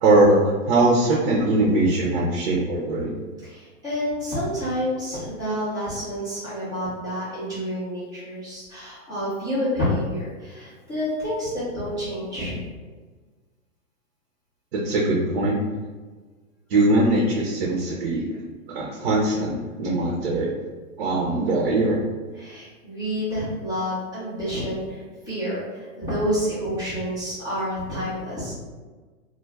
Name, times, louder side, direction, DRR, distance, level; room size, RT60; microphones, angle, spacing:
voice 1, 0.0-3.1 14.7-15.6 16.7-18.4 18.7-20.6 21.0-22.0, right 2 dB, 45° right, -3 dB, 0.5 m, -21 dB
voice 2, 3.4-12.6 22.3-25.0 25.2-28.5, equal, 10° left, -15 dB, 0.3 m, -28 dB
2.2 x 2.0 x 3.2 m, 1.4 s
hypercardioid pair, 140°, 42 cm